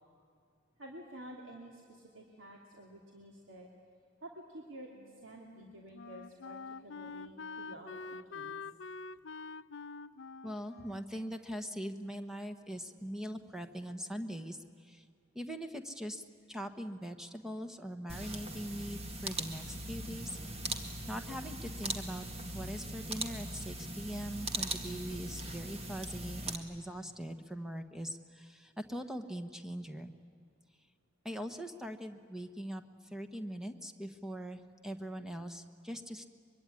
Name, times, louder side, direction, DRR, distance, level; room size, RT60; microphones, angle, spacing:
voice 1, 0.8-3.7 4.2-4.9 5.2-6.6 6.8-8.6, right 1 dB, 80° right, -1 dB, 2.8 m, -50 dB
Wind instrument woodwind instrument, 5.0-12.3, left 4 dB, 65° left, 0.6 m, -47 dB
voice 2, 10.4-15.0 15.3-20.4 21.1-22.3 22.5-30.1 31.2-32.8 33.1-36.3, equal, 5° right, 7 dB, 1.3 m, -41 dB
sound 1, 18.1-26.6, right 2 dB, 30° right, 1.9 m, -40 dB
24.0 x 23.0 x 9.9 m, 2.4 s
head